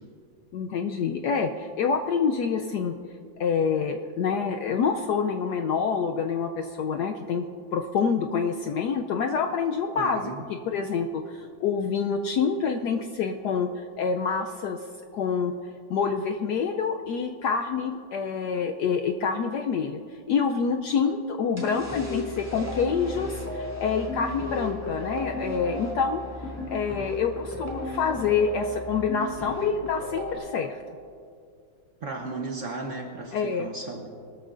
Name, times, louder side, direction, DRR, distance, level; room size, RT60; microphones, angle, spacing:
voice 1, 0.5-3.0 3.4-7.5 7.7-14.8 15.1-15.5 15.9-20.0 20.3-26.2 26.7-30.8 33.3-33.7, left 6 dB, 75° left, 5 dB, 1.0 m, -27 dB
voice 2, 10.0-10.4 32.0-34.1, right 3 dB, 50° right, 2 dB, 1.0 m, -35 dB
sound 1, 21.5-30.4, left 1 dB, 10° left, 2.7 m, -34 dB
21.0 x 13.5 x 2.5 m, 2.3 s
omnidirectional pair, 2.2 m